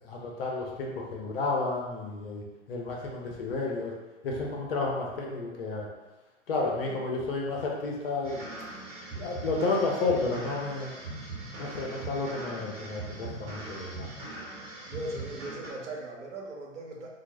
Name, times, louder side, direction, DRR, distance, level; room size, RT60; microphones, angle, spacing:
voice 1, 0.0-3.9 4.2-5.9 6.5-8.4 9.2-10.9 11.6-14.1, left 3 dB, 50° left, -1 dB, 0.7 m, -31 dB
sound 1, 8.2-15.7, right 2 dB, 30° right, 1.0 m, -40 dB
voice 2, 14.9-17.1, right 2 dB, 65° right, -1 dB, 0.7 m, -39 dB
2.3 x 2.0 x 3.3 m, 1.1 s
figure-of-eight pair, 105°, 38 cm